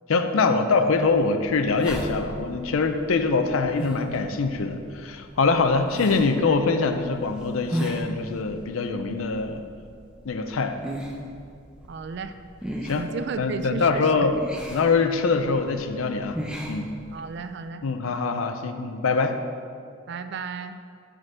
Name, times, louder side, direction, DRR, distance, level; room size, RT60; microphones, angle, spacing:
voice 1, 0.1-9.6 10.2-10.8 12.8-13.0 13.4-14.3 14.7-16.4 16.7-16.9 17.8-19.4, left 4 dB, 85° left, 7 dB, 0.5 m, -23 dB
sound 1, 0.9-17.5, equal, 5° right, 0.6 m, -37 dB
voice 2, 11.9-12.3 12.9-14.3 17.1-17.8 20.1-20.8, right 5 dB, 55° right, 10 dB, 0.3 m, -34 dB
7.7 x 3.8 x 6.3 m, 2.3 s
head